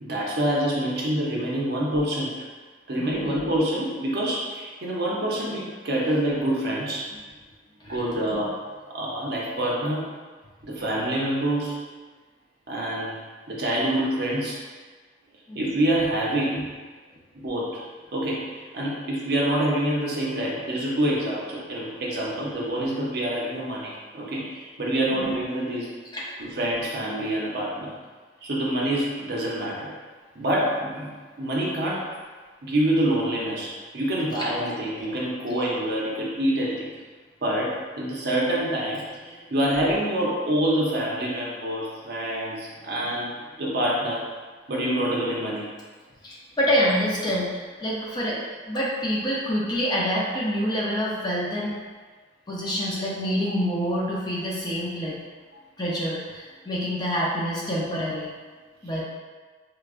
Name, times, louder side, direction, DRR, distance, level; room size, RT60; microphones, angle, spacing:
voice 1, 0.0-2.3 2.9-7.1 7.9-8.6 8.9-10.1 10.6-11.9 12.7-13.2 13.5-14.6 15.5-16.7 17.3-17.8 18.1-25.9 26.4-27.9 28.4-29.9 30.3-32.0 32.6-36.9 37.4-43.3 43.6-44.3 44.7-45.7, right 1 dB, 55° right, -4 dB, 0.7 m, -26 dB
voice 2, 3.0-3.3 7.8-8.4 15.5-15.8 25.1-25.3 26.1-26.2 46.2-51.7 52.5-55.2 55.8-58.3 58.8-59.0, equal, 20° left, -5 dB, 0.5 m, -27 dB
4.7 x 2.2 x 2.4 m, 1.4 s
head